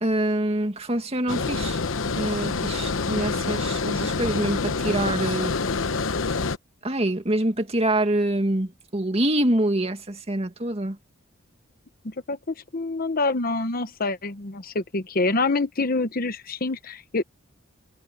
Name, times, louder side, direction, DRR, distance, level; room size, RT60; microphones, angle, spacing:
voice 1, 0.0-1.8 2.2-5.5 6.8-11.0, right 1 dB, 30° right, 2.2 m, -25 dB
Water, 1.3-6.6, left 4 dB, 90° left, 1.0 m, -26 dB
voice 2, 12.0-17.2, left 3 dB, 45° left, 1.0 m, -26 dB
head